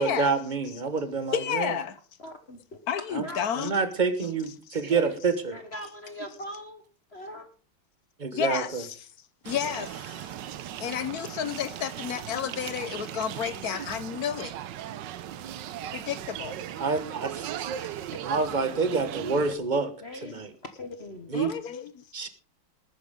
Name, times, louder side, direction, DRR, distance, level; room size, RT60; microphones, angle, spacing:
voice 1, 0.0-1.7 3.1-3.2 3.6-5.6 8.2-8.8 16.8-17.7 18.3-19.9 20.2-20.5 21.3-21.5 22.1-22.3, right 4 dB, 30° right, 1.0 m, -27 dB
voice 2, 1.3-2.0 2.9-3.8 4.7-4.8 8.3-9.1 9.4-10.3 10.8-14.5 15.9-16.6 21.3-22.0, left 8 dB, 60° left, 1.0 m, -31 dB
voice 3, 2.2-3.5 4.9-5.2 5.5-6.8 7.1-7.5 18.0-18.1 20.0-20.4 20.8-21.3, left 1 dB, 40° left, 1.2 m, -41 dB
sound 1, 9.4-19.6, right 11 dB, 65° right, 1.3 m, -38 dB
19.5 x 9.5 x 3.6 m
omnidirectional pair, 2.3 m